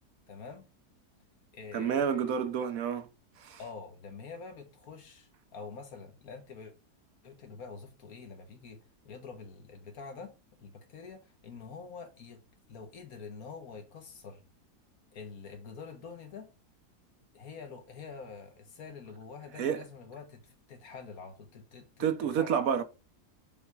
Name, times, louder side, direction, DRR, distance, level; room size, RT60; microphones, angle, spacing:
voice 1, 0.3-0.7 1.5-2.4 3.6-6.7 7.2-8.8 9.0-10.3 10.6-12.4 12.7-14.4 15.1-16.5 17.3-22.7, left 5 dB, 60° left, 1.7 m, -46 dB
voice 2, 1.7-3.1 3.4-3.6 19.6-19.8 22.0-22.8, right 7 dB, 65° right, 1.2 m, -29 dB
7.1 x 3.5 x 4.6 m
omnidirectional pair, 1.7 m